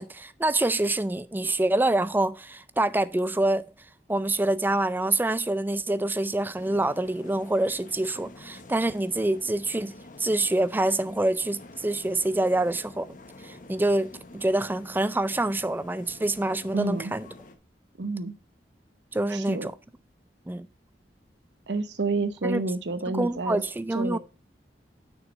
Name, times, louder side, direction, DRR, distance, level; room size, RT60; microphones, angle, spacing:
voice 1, 0.0-3.6 4.1-9.9 10.2-13.1 13.4-17.3 19.1-19.7 20.5-20.7 22.4-22.6 23.1-24.2, right 2 dB, 10° right, 0.4 m, -26 dB
sound 1, 6.5-17.6, left 2 dB, 50° left, 1.0 m, -48 dB
voice 2, 16.7-17.1 18.0-18.4 19.3-19.7 21.7-23.6 23.9-24.2, right 3 dB, 80° right, 0.8 m, -29 dB
6.4 x 6.3 x 5.1 m
head